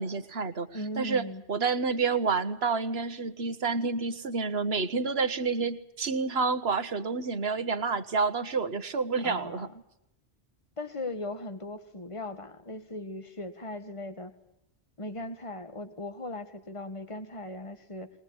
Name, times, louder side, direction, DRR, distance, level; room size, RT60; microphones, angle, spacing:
voice 1, 0.0-0.7 1.0-9.7, right 4 dB, 75° right, 13 dB, 1.6 m, -29 dB
voice 2, 0.7-1.4 9.2-9.8 10.8-14.3 15.0-18.1, left 1 dB, 30° left, 9 dB, 1.9 m, -38 dB
21.0 x 21.0 x 8.7 m, 0.82 s
omnidirectional pair, 1.1 m